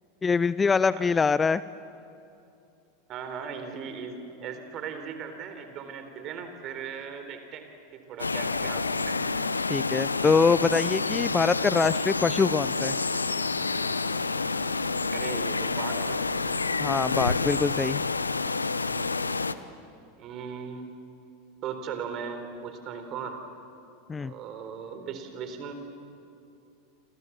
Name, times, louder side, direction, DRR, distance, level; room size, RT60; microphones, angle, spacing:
voice 1, 0.2-1.6 9.7-13.0 16.8-18.0 24.1-24.3, left 5 dB, 20° left, 17 dB, 0.6 m, -24 dB
voice 2, 3.1-7.6 7.9-9.2 15.1-16.2 20.2-20.9 21.6-23.4 24.2-25.7, right 6 dB, 40° right, 7 dB, 4.2 m, -38 dB
sound 1, 8.2-19.5, left 3 dB, 90° left, 0.8 m, -28 dB
29.0 x 27.0 x 7.5 m, 2.7 s
figure-of-eight pair, 85°, 0 cm